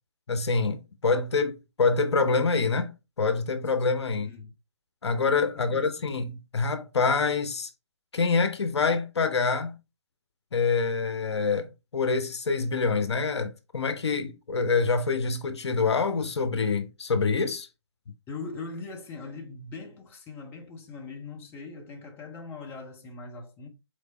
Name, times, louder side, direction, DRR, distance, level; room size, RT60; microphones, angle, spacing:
voice 1, 0.3-2.9 3.2-4.3 5.0-7.7 8.1-9.8 10.5-17.7, left 4 dB, 70° left, 0.7 m, -26 dB
voice 2, 4.2-4.5 5.5-6.1 18.3-23.7, left 4 dB, 15° left, 0.7 m, -41 dB
4.3 x 3.2 x 2.9 m
figure-of-eight pair, 145°, 15 cm